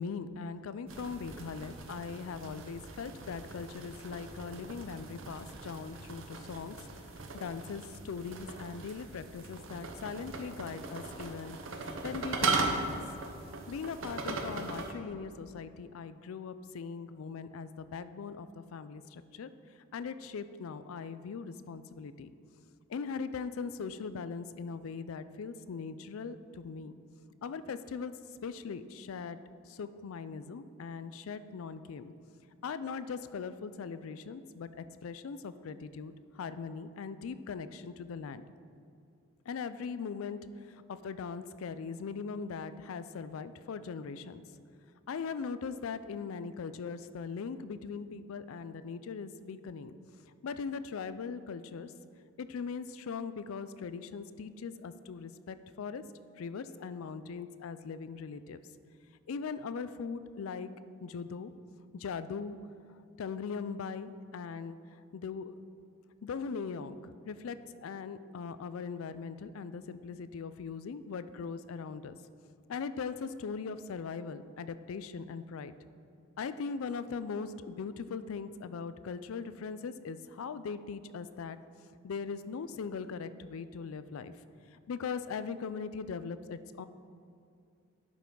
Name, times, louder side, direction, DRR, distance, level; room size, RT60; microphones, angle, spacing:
voice 1, 0.0-6.7 7.3-11.6 11.8-13.0 13.7-19.5 19.9-22.3 22.9-26.9 27.4-28.1 28.4-29.4 29.7-32.1 32.6-38.4 39.5-40.4 40.9-44.4 45.1-49.9 50.4-51.9 52.4-56.0 56.4-58.6 59.3-60.7 61.0-61.5 61.9-62.6 63.2-64.8 65.1-65.5 66.2-72.1 72.7-75.7 76.4-81.6 82.0-84.3 84.9-86.8, left 5 dB, 80° left, 13 dB, 0.4 m, -40 dB
sound 1, 0.9-14.9, right 3 dB, 70° right, 0.8 m, -38 dB
11.0 x 5.7 x 3.8 m, 2.5 s
head